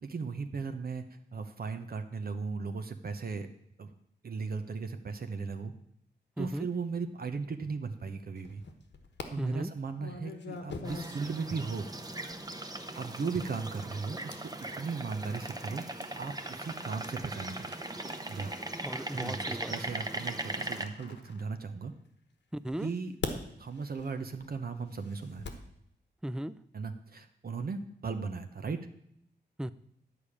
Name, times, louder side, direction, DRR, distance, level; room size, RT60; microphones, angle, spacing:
voice 1, 0.0-1.0 1.3-3.5 3.8-3.9 4.2-5.7 6.4-8.6 9.3-11.9 12.9-14.5 14.8-15.8 16.2-17.7 18.3-18.5 19.1-21.9 22.8-23.1 23.6-25.4 26.7-28.9, right 4 dB, 55° right, 7 dB, 0.9 m, -37 dB
voice 2, 6.4-6.7 9.4-9.7 18.8-19.7 22.5-22.9 26.2-26.6 29.6-29.7, right 1 dB, 5° right, 14 dB, 0.4 m, -36 dB
sound 1, 8.4-9.3 10.0-22.0 22.7-25.7, left 4 dB, 85° left, 1.4 m, -46 dB
sound 2, 10.9-20.9, right 2 dB, 20° right, 0.9 m, -39 dB
11.0 x 5.1 x 8.5 m, 0.72 s
wide cardioid pair, 105°, 18 cm